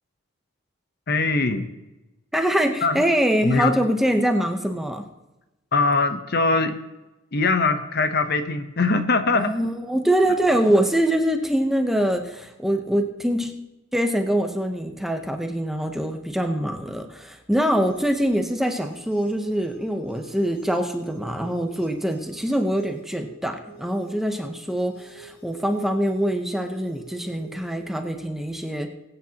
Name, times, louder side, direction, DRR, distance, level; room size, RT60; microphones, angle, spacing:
voice 1, 1.1-1.7 2.8-3.0 3.4-3.8 5.7-6.8 7.3-9.6, left 3 dB, 50° left, 9 dB, 0.8 m, -22 dB
voice 2, 2.3-5.0 9.3-13.5 13.9-28.9, right 1 dB, ahead, 4 dB, 0.8 m, -24 dB
sound 1, 17.8-27.8, right 2 dB, 70° left, 5.1 m, -47 dB
22.5 x 8.9 x 2.9 m, 1.0 s
head